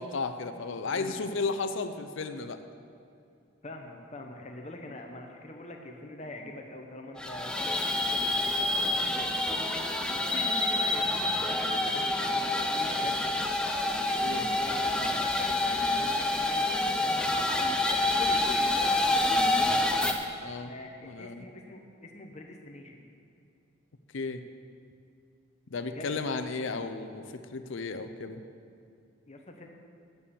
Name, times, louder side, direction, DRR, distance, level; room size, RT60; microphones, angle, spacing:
voice 1, 0.0-2.6 14.2-14.5 20.4-20.7 21.0-21.4 24.1-24.4 25.7-28.4, left 4 dB, 60° left, 9 dB, 0.5 m, -34 dB
voice 2, 0.9-1.2 3.6-9.4 10.1-13.2 14.1-16.9 17.9-20.2 20.5-23.0 25.8-26.1 29.3-29.7, left 2 dB, 30° left, 3 dB, 0.8 m, -44 dB
sound 1, 7.2-20.1, left 2 dB, 5° left, 0.5 m, -27 dB
9.8 x 6.9 x 7.0 m, 2.5 s
head